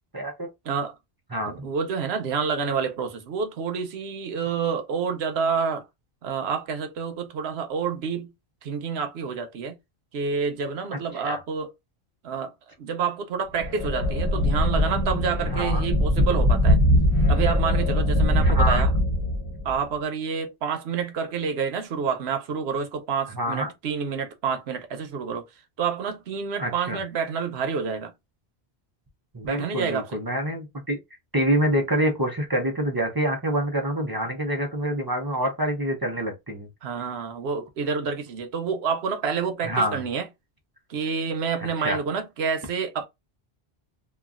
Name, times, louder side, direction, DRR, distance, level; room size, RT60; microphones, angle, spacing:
voice 1, 0.1-0.5 1.3-1.7 11.1-11.4 15.5-15.9 18.4-18.8 23.3-23.7 26.6-27.0 29.3-31.0 31.3-36.7 39.6-40.0 41.8-42.0, right 1 dB, 25° right, 0.6 m, -26 dB
voice 2, 1.4-5.8 6.2-8.3 8.6-9.8 10.1-11.7 12.2-12.5 12.8-16.8 17.3-18.9 19.6-25.5 25.8-28.1 29.4-30.2 36.8-40.3 40.9-43.0, right 6 dB, 90° right, 0.9 m, -28 dB
sound 1, 13.6-19.7, left 1 dB, 25° left, 1.0 m, -21 dB
3.0 x 2.3 x 2.4 m
omnidirectional pair, 1.0 m